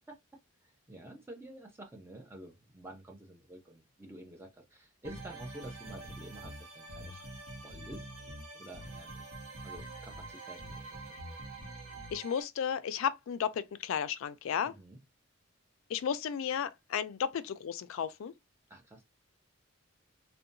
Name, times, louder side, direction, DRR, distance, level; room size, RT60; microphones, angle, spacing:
voice 1, 0.9-7.3 7.6-8.1 8.5-9.3 9.6-11.2 14.7-15.0 18.7-19.0, right 1 dB, 10° right, 0.5 m, -50 dB
sound 1, 5.0-12.4, right 2 dB, 75° right, 0.8 m, -45 dB
voice 2, 12.1-14.7 15.9-18.3, left 8 dB, 70° left, 0.3 m, -33 dB
2.8 x 2.1 x 2.5 m
head